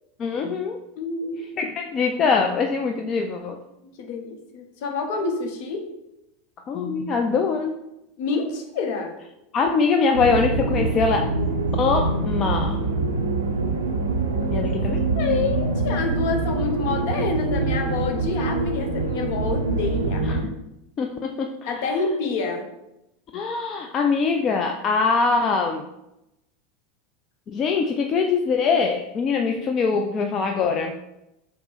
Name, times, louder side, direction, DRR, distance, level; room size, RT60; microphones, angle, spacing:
voice 1, 0.2-0.8 1.6-3.6 6.7-7.7 9.5-11.3 11.8-12.8 14.5-15.0 20.3-20.4 21.0-21.7 23.3-25.9 27.5-31.0, left 5 dB, 35° left, 3 dB, 0.3 m, -23 dB
voice 2, 1.0-1.5 4.0-5.9 8.2-9.1 15.1-20.3 21.7-22.6, left 4 dB, 60° left, 4 dB, 0.7 m, -27 dB
sound 1, 10.1-20.4, right 3 dB, 85° right, 0.5 m, -24 dB
4.5 x 2.0 x 3.9 m, 0.89 s
figure-of-eight pair, 85°, 0 cm